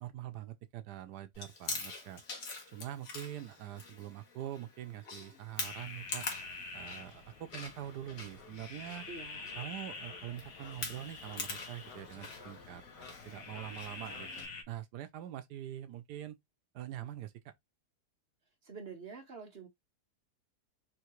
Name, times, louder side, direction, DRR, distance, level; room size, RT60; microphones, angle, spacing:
voice 1, 0.0-2.2 2.7-6.3 6.7-9.0 9.6-14.3 14.7-16.4 16.7-17.5, right 12 dB, 80° right, 1.2 m, -44 dB
Chewing mastication, 1.3-14.5, left 4 dB, 60° left, 1.7 m, -45 dB
sound 1, 5.6-14.6, left 4 dB, 75° left, 1.7 m, -47 dB
voice 2, 9.1-9.6 18.6-19.7, right 4 dB, 40° right, 1.1 m, -47 dB
4.6 x 2.9 x 3.0 m
omnidirectional pair, 1.8 m